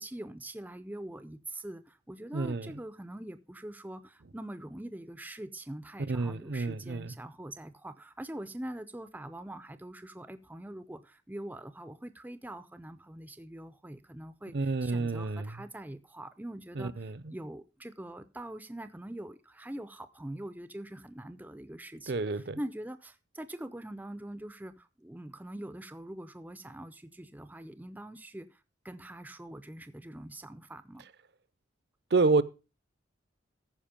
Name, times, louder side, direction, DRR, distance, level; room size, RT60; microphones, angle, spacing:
voice 1, 0.0-31.0, right 1 dB, 10° right, 0.5 m, -43 dB
voice 2, 2.3-2.7 6.1-7.1 14.5-15.5 16.8-17.1 22.1-22.6 32.1-32.4, right 3 dB, 55° right, 0.6 m, -29 dB
14.0 x 5.1 x 5.1 m
head